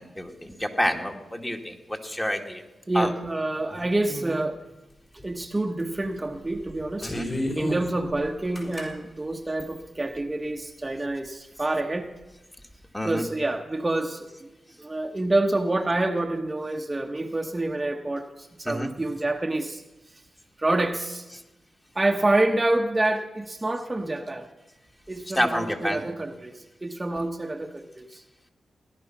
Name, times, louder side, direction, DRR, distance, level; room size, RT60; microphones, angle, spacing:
voice 1, 0.0-2.6 2.9-3.1 7.0-7.3 12.9-13.2 18.7-18.9 25.3-26.0, equal, 15° left, 3 dB, 2.0 m, -28 dB
voice 2, 2.9-4.6 5.1-7.1 7.5-12.1 13.0-14.5 14.8-19.8 20.6-21.3 21.9-24.5 25.1-28.2, right 2 dB, 25° right, 4 dB, 1.0 m, -27 dB
sound 1, 5.2-5.3 5.8-6.1 6.6-8.9 9.6-10.1, equal, 35° left, 4.9 m, -31 dB
18.0 x 11.0 x 6.0 m, 1.0 s
cardioid pair, 55°, 0 cm